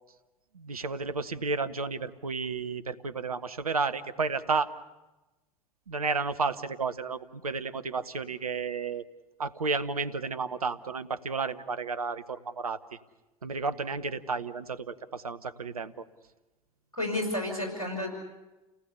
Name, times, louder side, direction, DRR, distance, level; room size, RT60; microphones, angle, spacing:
voice 1, 0.5-4.7 5.9-9.0 9.4-12.8 13.4-16.0, right 4 dB, 85° right, 12 dB, 0.9 m, -32 dB
voice 2, 16.9-18.1, left 1 dB, 90° left, 2 dB, 6.0 m, -31 dB
30.0 x 18.5 x 6.8 m, 1.1 s
figure-of-eight pair, 60°, 18 cm